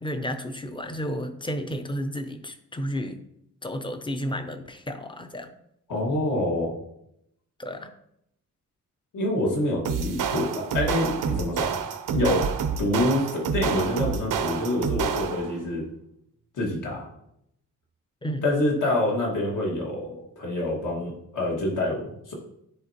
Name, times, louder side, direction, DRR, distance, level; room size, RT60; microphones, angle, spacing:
voice 1, 0.0-3.2 3.6-5.5 7.6-7.9 18.2-18.4, equal, 15° left, 8 dB, 0.5 m, -32 dB
voice 2, 5.9-6.8 9.1-11.7 12.1-12.5 12.8-15.9 16.5-17.1 18.4-22.3, left 1 dB, 75° left, -3 dB, 1.9 m, -26 dB
sound 1, 9.8-15.6, right 7 dB, 85° right, 0.6 m, -28 dB
9.9 x 4.3 x 2.9 m, 0.77 s
wide cardioid pair, 165°, 31 cm